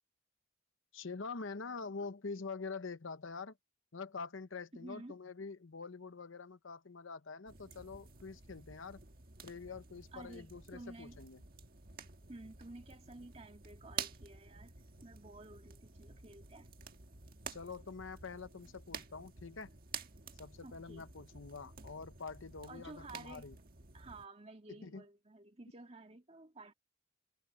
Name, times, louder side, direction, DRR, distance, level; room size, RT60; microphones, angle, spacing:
voice 1, 0.9-3.6 3.9-9.0 9.4-11.4 17.5-19.7 20.4-23.5 24.8-25.0, left 4 dB, 70° left, 0.9 m, -45 dB
voice 2, 4.7-5.2 10.1-11.2 12.3-16.8 20.6-21.1 22.7-23.5 23.9-26.7, right 2 dB, 30° right, 2.1 m, -52 dB
sound 1, 7.5-24.3, right 6 dB, 45° right, 1.6 m, -50 dB
head